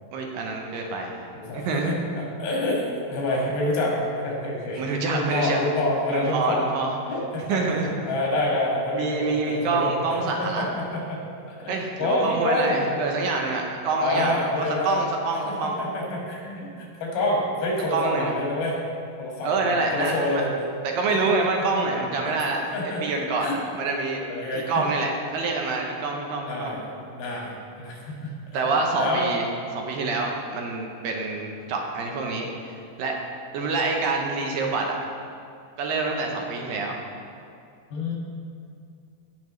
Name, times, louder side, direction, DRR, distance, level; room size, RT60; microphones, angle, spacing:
voice 1, 0.1-1.2 1.5-1.9 4.8-5.6 6.1-6.9 7.5-7.9 8.9-10.6 11.7-15.8 17.9-18.3 19.4-20.4 20.8-22.6 23.0-24.3 24.7-26.7 28.5-29.5 29.7-33.2 33.5-35.0 35.8-37.0, right 3 dB, 75° right, 1 dB, 2.4 m, -26 dB
voice 2, 1.3-4.8 5.1-6.7 7.1-7.8 8.1-11.2 11.5-11.7 12.0-12.8 14.0-15.0 15.5-18.8 19.2-20.5 21.1-21.2 22.2-22.3 22.7-23.0 23.4-23.6 24.3-24.9 26.4-28.3 29.0-29.3 37.9-38.1, left 1 dB, 85° left, -3 dB, 3.8 m, -27 dB
16.0 x 5.8 x 3.1 m, 2.4 s
omnidirectional pair, 4.3 m